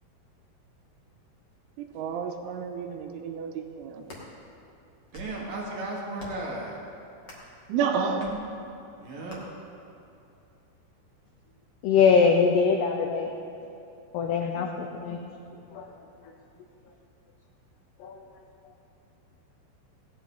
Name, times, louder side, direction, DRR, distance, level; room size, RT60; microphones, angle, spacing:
voice 1, 1.8-4.1 7.7-8.4, right 6 dB, 90° right, 5 dB, 3.2 m, -30 dB
sound 1, 3.8-4.3 4.9-5.4 6.1-6.5 7.2-7.5 8.2-8.4 9.3-9.4, left 1 dB, 65° left, 1.0 m, -45 dB
voice 2, 5.1-6.8 9.0-9.4, right 2 dB, 65° right, -3 dB, 2.5 m, -35 dB
voice 3, 11.8-13.3 14.1-15.3 15.7-15.9 18.0-18.2, left 5 dB, 80° left, 2 dB, 2.4 m, -23 dB
17.5 x 11.0 x 3.8 m, 2.8 s
omnidirectional pair, 5.6 m